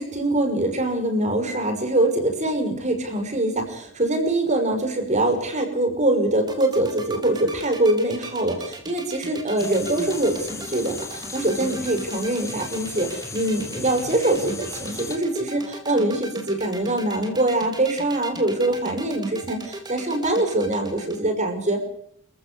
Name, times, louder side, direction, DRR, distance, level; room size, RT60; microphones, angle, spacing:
voice 1, 0.0-21.8, right 1 dB, 35° right, 6 dB, 5.7 m, -23 dB
sound 1, 6.4-21.2, right 2 dB, 20° right, 4.0 m, -38 dB
sound 2, 9.6-15.2, left 4 dB, 15° left, 2.8 m, -37 dB
28.0 x 15.0 x 8.7 m, 0.66 s
head